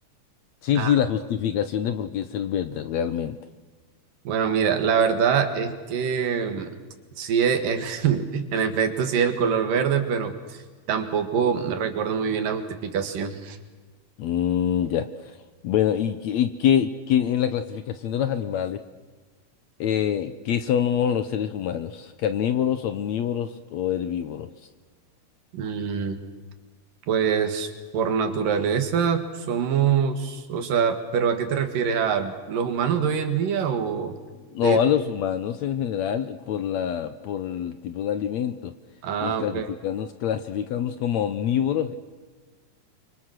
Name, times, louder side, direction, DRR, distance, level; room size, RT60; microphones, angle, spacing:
voice 1, 0.6-3.4 14.2-15.4 15.6-18.8 19.8-24.5 34.5-38.7 39.2-42.0, left 9 dB, 70° left, 10 dB, 1.9 m, -25 dB
voice 2, 4.3-6.7 7.2-10.6 10.9-13.6 25.5-26.2 27.1-34.2 34.6-34.8 39.0-39.6, right 7 dB, 75° right, 7 dB, 3.5 m, -24 dB
29.0 x 24.5 x 6.5 m, 1.4 s
omnidirectional pair, 3.9 m